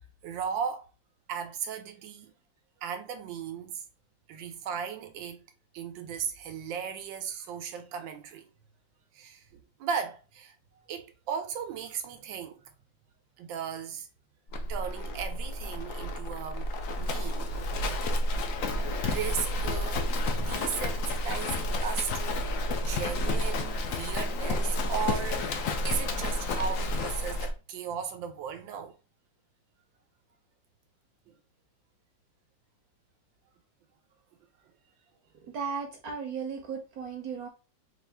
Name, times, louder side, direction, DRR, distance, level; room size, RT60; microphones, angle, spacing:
voice 1, 0.2-0.9 1.3-2.3 2.8-3.8 4.3-5.4 5.7-8.5 9.1-10.6 10.9-12.7 13.4-14.1 14.7-17.6 17.9-18.1 19.0-22.5 22.8-28.9, right 7 dB, 85° right, 1.4 m, -36 dB
Livestock farm animals working animals, 14.5-27.5, left 1 dB, 65° left, 0.8 m, -30 dB
voice 2, 35.4-37.5, right 6 dB, 65° right, 1.1 m, -36 dB
4.4 x 2.5 x 3.3 m
omnidirectional pair, 2.0 m